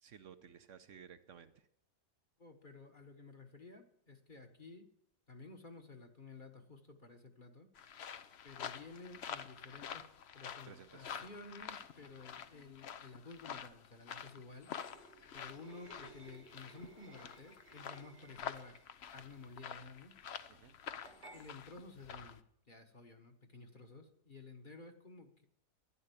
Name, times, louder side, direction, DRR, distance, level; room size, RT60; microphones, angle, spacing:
voice 1, 0.0-1.7 10.7-11.3 20.5-20.8, right 7 dB, 55° right, 11 dB, 1.1 m, -56 dB
voice 2, 2.4-4.9 5.3-7.7 8.4-10.0 10.3-14.7 15.3-18.8 19.1-20.2 21.3-25.5, left 3 dB, 35° left, 5 dB, 1.3 m, -53 dB
sound 1, 7.8-22.4, left 8 dB, 55° left, 0.8 m, -48 dB
sound 2, 14.8-19.0 21.0-21.4, right 2 dB, 75° right, 2.9 m, -58 dB
12.5 x 11.0 x 8.5 m, 0.72 s
omnidirectional pair, 1.7 m